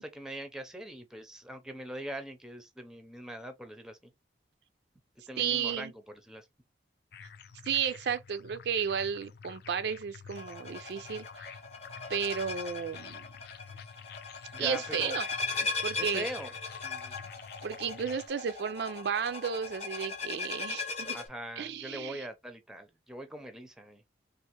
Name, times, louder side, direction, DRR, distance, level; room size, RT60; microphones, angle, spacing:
voice 1, 0.0-4.1 5.3-6.5 14.5-15.2 16.0-16.5 16.8-17.3 21.1-24.0, right 1 dB, 5° right, 0.5 m, -42 dB
voice 2, 5.4-5.9 7.7-11.5 12.1-13.2 14.6-15.3 15.8-16.3 17.6-21.2 21.6-22.2, right 7 dB, 65° right, 0.4 m, -33 dB
sound 1, 7.1-18.3, left 6 dB, 60° left, 0.4 m, -50 dB
sound 2, 10.3-21.3, left 4 dB, 35° left, 0.8 m, -38 dB
3.4 x 2.4 x 2.9 m
head